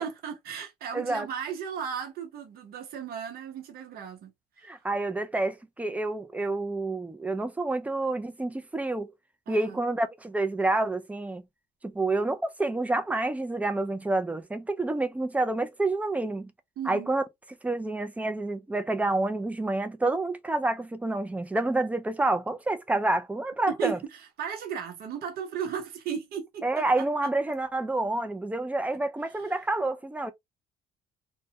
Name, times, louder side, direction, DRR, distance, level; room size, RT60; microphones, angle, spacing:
voice 1, 0.0-4.7 9.5-9.8 16.8-17.1 23.7-27.3 29.2-29.5, right 8 dB, 65° right, 0.8 m, -36 dB
voice 2, 0.9-1.3 4.6-9.1 9.5-11.4 11.8-16.5 16.9-17.2 17.6-24.0 26.6-30.3, right 2 dB, 10° right, 0.3 m, -28 dB
2.1 x 2.1 x 2.7 m
cardioid pair, 110°, 17 cm